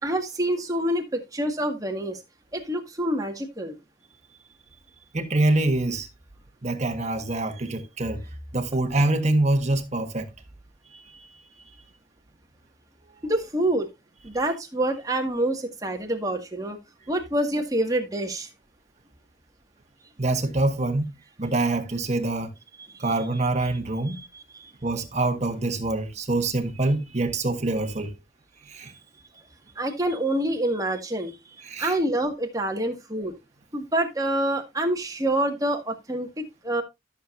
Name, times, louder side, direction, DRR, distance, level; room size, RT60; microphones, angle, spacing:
voice 1, 0.0-2.2 2.5-3.8 13.2-13.9 14.2-16.8 17.1-18.5 24.1-24.7 29.8-31.3 31.8-33.3 33.7-36.8, right 1 dB, 20° right, 1.8 m, -27 dB
voice 2, 5.1-6.1 6.6-8.2 8.5-10.3 10.9-11.3 20.2-21.0 21.4-22.5 23.0-24.2 24.8-28.1 28.7-28.9 31.6-32.0, right 2 dB, 40° right, 1.4 m, -25 dB
13.5 x 7.0 x 2.6 m
head